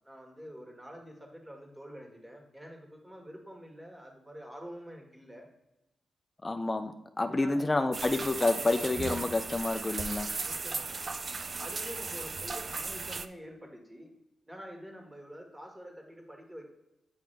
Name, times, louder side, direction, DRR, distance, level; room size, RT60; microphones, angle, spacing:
voice 1, 0.0-5.5 7.2-7.7 10.4-11.1 11.6-14.1 14.5-16.6, equal, 15° right, 1 dB, 1.6 m, -47 dB
voice 2, 6.4-10.3, left 2 dB, 25° left, 7 dB, 0.4 m, -29 dB
sound 1, 7.9-13.3, right 4 dB, 50° right, 0.4 m, -36 dB
8.9 x 3.4 x 3.3 m, 0.92 s
cardioid pair, 60°, 0 cm